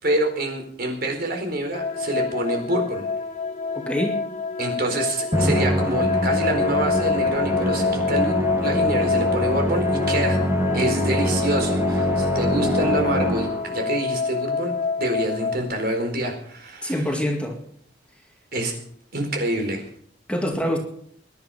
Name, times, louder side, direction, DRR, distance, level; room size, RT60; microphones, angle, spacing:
voice 1, 0.0-3.1 4.6-8.3 8.6-10.4 10.7-14.7 15.0-17.0 18.5-18.7 19.1-19.8, right 1 dB, 55° right, 4 dB, 4.3 m, -26 dB
sound 1, 1.7-15.6, left 4 dB, 40° left, 1.6 m, -26 dB
voice 2, 3.9-4.2 16.8-17.6 20.3-20.8, equal, 5° left, 1 dB, 2.2 m, -25 dB
Musical instrument, 5.3-13.8, equal, 15° right, 1.4 m, -25 dB
21.5 x 11.0 x 5.7 m, 0.63 s
head